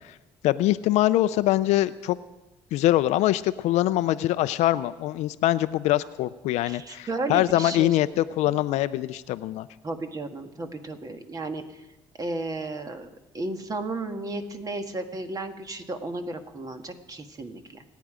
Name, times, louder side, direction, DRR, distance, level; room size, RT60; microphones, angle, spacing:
voice 1, 0.4-2.2 2.7-9.7, left 15 dB, 80° left, 13 dB, 0.5 m, -23 dB
voice 2, 6.6-8.0 8.5-8.6 9.8-11.6 12.2-17.8, right 2 dB, 30° right, 6 dB, 1.6 m, -34 dB
27.5 x 9.4 x 5.0 m, 1.1 s
cardioid pair, 100°, 11 cm